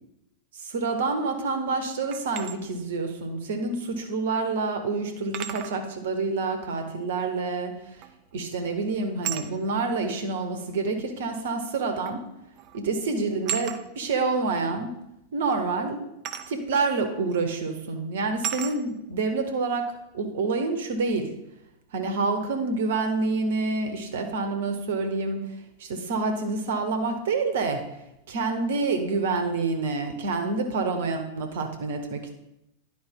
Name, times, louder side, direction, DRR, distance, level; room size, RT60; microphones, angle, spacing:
voice 1, 0.5-7.7 8.3-12.2 12.7-14.9 15.3-16.1 16.5-21.3 21.9-25.5 25.8-27.8 28.3-32.3, right 3 dB, 60° right, 6 dB, 1.0 m, -27 dB
sound 1, 2.1-2.6 4.1-4.2 5.3-5.8 8.0-8.3 9.2-9.5 10.7-10.8 12.1-12.3 12.6-12.8 13.5-13.8 16.2-16.5 17.3-17.5 18.4-18.8, right 9 dB, 40° right, 0.5 m, -33 dB
10.5 x 4.7 x 3.6 m, 0.86 s
figure-of-eight pair, 90°, 0 cm